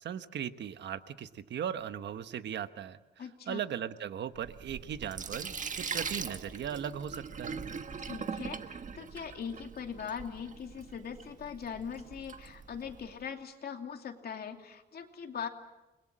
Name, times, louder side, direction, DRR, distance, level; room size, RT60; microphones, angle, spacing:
voice 1, 0.0-7.6, right 9 dB, 80° right, 11 dB, 1.2 m, -38 dB
voice 2, 3.2-3.6 8.0-15.5, left 7 dB, 60° left, 4 dB, 2.7 m, -41 dB
Sink (filling or washing), 4.3-13.1, right 6 dB, 45° right, 1.4 m, -41 dB
29.5 x 21.5 x 7.7 m, 1.0 s
wide cardioid pair, 125°, 18 cm